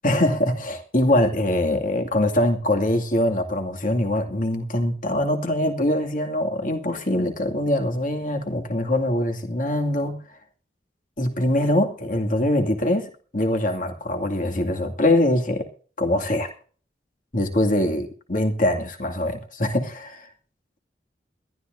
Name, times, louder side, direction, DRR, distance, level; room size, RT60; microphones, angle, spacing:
voice 1, 0.0-10.2 11.2-15.7 16.0-16.5 17.3-20.3, left 1 dB, 50° left, 3 dB, 2.4 m, -23 dB
21.5 x 13.0 x 2.7 m, 0.42 s
head